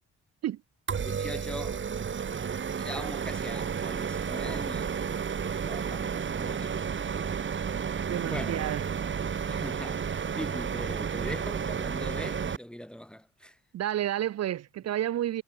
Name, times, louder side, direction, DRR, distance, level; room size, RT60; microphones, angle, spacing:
sound 1, 0.9-12.6, right 7 dB, 40° right, 1.8 m, -32 dB
voice 1, 1.0-1.8 2.8-5.0 5.6-6.8 8.2-8.7 9.5-13.6, equal, 5° left, 1.8 m, -41 dB
voice 2, 8.1-8.8 13.7-15.4, right 12 dB, 55° right, 0.7 m, -30 dB
cardioid pair, 90°, 30 cm